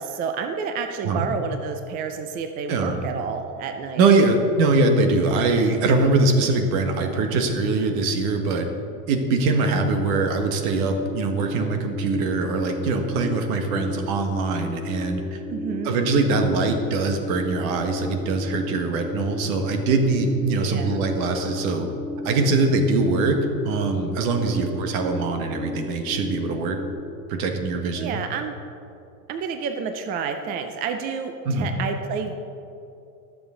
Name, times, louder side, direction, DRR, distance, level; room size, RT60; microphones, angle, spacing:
voice 1, 0.0-4.0 15.5-16.0 20.5-21.0 24.5-24.7 28.0-28.5 29.3-32.3, right 6 dB, 20° right, 6 dB, 0.3 m, -30 dB
voice 2, 4.0-8.7 9.1-15.4 15.8-21.9 22.2-23.4 23.7-26.8 27.3-28.2 31.4-31.7, right 3 dB, 60° right, 4 dB, 1.6 m, -22 dB
sound 1, 10.6-26.9, left 3 dB, ahead, 1.6 m, -34 dB
19.5 x 7.1 x 3.8 m, 2.6 s
supercardioid pair, 135°, 46 cm